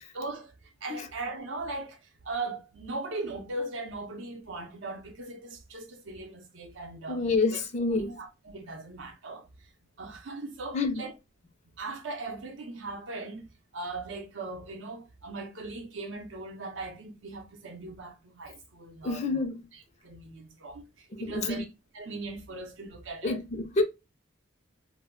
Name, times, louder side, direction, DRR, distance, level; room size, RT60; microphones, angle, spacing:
voice 1, 0.1-7.2 7.5-7.6 7.9-9.7 10.0-11.1 11.8-13.5 13.7-19.4 19.7-21.6 21.9-23.4, right 3 dB, 75° right, 0.6 m, -39 dB
voice 2, 7.1-8.1 10.7-11.0 19.0-19.6 21.2-21.6 23.2-23.8, left 3 dB, 35° left, 0.4 m, -28 dB
2.2 x 2.0 x 3.6 m
head